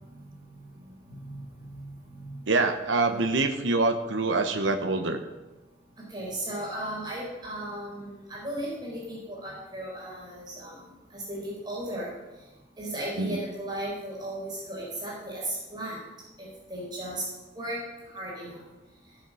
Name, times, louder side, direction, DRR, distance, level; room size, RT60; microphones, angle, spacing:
voice 1, 1.1-2.4 6.1-10.8 11.1-12.1 12.8-16.0 16.4-17.2 17.5-17.8 18.1-18.6, right 1 dB, 20° right, -5 dB, 4.5 m, -36 dB
voice 2, 2.5-5.2 13.2-13.4, right 3 dB, 75° right, 6 dB, 1.0 m, -25 dB
16.0 x 7.4 x 6.3 m, 1.1 s
head